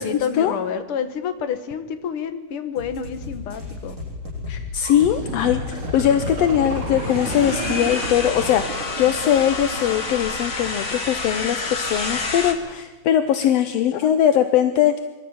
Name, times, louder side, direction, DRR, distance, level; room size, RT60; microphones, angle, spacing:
voice 1, 0.0-4.0, left 7 dB, 55° left, 9 dB, 1.8 m, -28 dB
sound 1, 2.8-8.6, left 2 dB, 25° right, 7.7 m, -32 dB
voice 2, 4.5-15.1, left 10 dB, 70° left, 9 dB, 1.6 m, -20 dB
sound 2, 5.0-12.0 12.4-12.5, right 3 dB, 40° right, 3.9 m, -34 dB
sound 3, 5.8-12.5, left 3 dB, 35° left, 1.6 m, -29 dB
25.0 x 13.0 x 8.8 m, 1.2 s
omnidirectional pair, 3.6 m